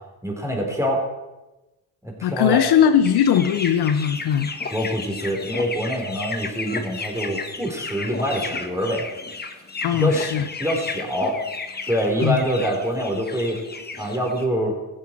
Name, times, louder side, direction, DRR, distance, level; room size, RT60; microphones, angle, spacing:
voice 1, 0.2-1.0 2.0-2.6 4.7-9.1 10.0-11.4 11.9-13.6 14.0-14.8, equal, 5° right, 0 dB, 4.0 m, -25 dB
voice 2, 2.2-4.5 9.8-10.5 12.2-12.4, left 9 dB, 65° left, 10 dB, 0.9 m, -19 dB
sound 1, 3.0-14.5, left 4 dB, 25° left, 1.3 m, -33 dB
15.0 x 8.0 x 4.6 m, 1.1 s
supercardioid pair, 70°, 42 cm